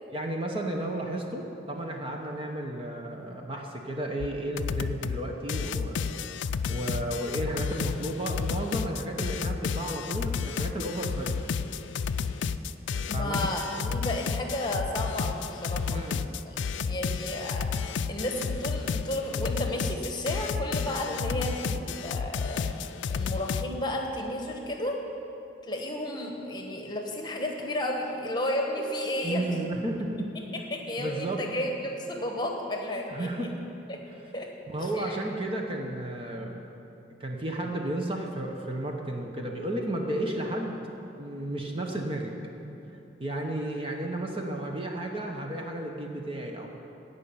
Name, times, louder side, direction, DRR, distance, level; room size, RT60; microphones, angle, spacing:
voice 1, 0.1-11.4 13.1-13.3 15.8-16.3 29.2-30.3 31.0-31.4 33.1-33.5 34.7-36.6 37.2-40.8 41.2-42.3 43.2-46.7, right 1 dB, 30° right, 1 dB, 1.0 m, -33 dB
sound 1, 4.2-4.3 4.6-5.2 5.5-23.7, left 5 dB, 80° left, 0.4 m, -31 dB
voice 2, 13.1-16.0 16.5-22.7 23.1-25.0 25.6-29.5 30.7-33.5 33.9-34.0 34.3-34.5 34.8-35.2, left 1 dB, 25° left, 1 dB, 1.3 m, -33 dB
16.0 x 5.5 x 8.8 m, 3.0 s
head